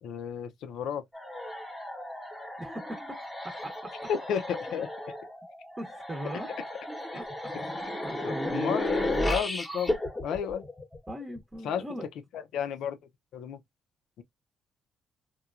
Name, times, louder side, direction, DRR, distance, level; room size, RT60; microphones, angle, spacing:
voice 1, 0.0-1.0 4.1-4.9 8.2-10.0 10.2-10.6 11.6-11.8 12.3-13.0 13.3-13.6, left 8 dB, 80° left, 0.5 m, -32 dB
sound 1, 1.1-11.4, left 1 dB, 15° left, 0.8 m, -34 dB
voice 2, 2.6-3.2 3.4-4.1 5.8-6.6 7.1-7.5 8.0-8.6 11.1-12.1, right 1 dB, 20° right, 0.7 m, -40 dB
2.9 x 2.2 x 2.3 m
cardioid pair, 90°, 0 cm